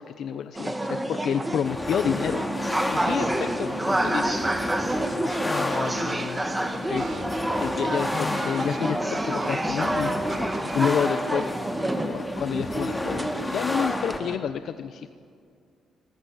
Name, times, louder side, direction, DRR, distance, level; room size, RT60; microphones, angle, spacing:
voice 1, 0.0-4.4 5.1-5.6 6.8-11.5 11.8-15.1, left 8 dB, 65° left, 10 dB, 0.8 m, -30 dB
sound 1, 0.5-14.4, right 1 dB, 10° right, 2.1 m, -29 dB
sound 2, 1.6-14.2, left 1 dB, 15° left, 2.4 m, -32 dB
voice 2, 3.2-3.8 5.4-6.5 8.1-8.5, left 6 dB, 50° left, 12 dB, 1.3 m, -36 dB
sound 3, 4.9-5.0 5.3-9.9 10.3-10.8, right 4 dB, 40° right, 3.4 m, -41 dB
22.5 x 20.5 x 9.5 m, 2.3 s
cardioid pair, 90°, 0 cm